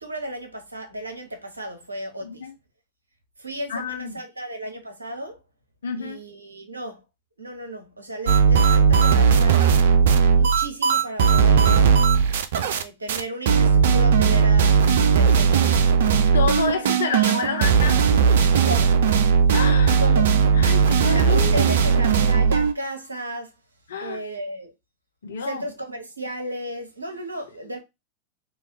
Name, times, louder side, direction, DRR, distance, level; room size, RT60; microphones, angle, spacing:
voice 1, 0.0-2.5 3.4-5.4 6.0-7.0 7.4-9.6 10.4-11.9 12.8-14.8 15.1-15.7 16.6-17.2 18.7-19.0 20.0-20.3 21.0-23.5 24.0-24.7 25.4-27.8, right 1 dB, 80° right, 0.7 m, -34 dB
voice 2, 2.2-2.5 3.7-4.2 5.8-6.2 16.3-18.0 19.5-20.0 20.5-22.2 23.9-24.2 25.2-25.6, left 6 dB, 65° left, 0.6 m, -29 dB
sound 1, 8.3-12.8 13.1-13.2 13.5-22.7, right 6 dB, 60° right, 0.3 m, -17 dB
3.1 x 2.5 x 2.8 m
figure-of-eight pair, 90°, 0 cm